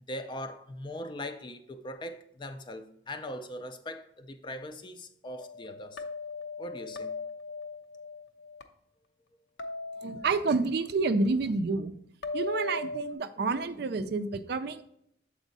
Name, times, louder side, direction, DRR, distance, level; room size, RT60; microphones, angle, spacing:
voice 1, 0.1-6.0 6.6-7.1, left 1 dB, 25° left, 0.4 m, -40 dB
sound 1, 5.4-8.6 9.6-10.9 12.2-13.1, left 3 dB, 65° left, 0.6 m, -38 dB
voice 2, 10.0-11.9 12.3-14.8, right 3 dB, 55° right, 0.4 m, -29 dB
7.2 x 4.4 x 4.0 m
head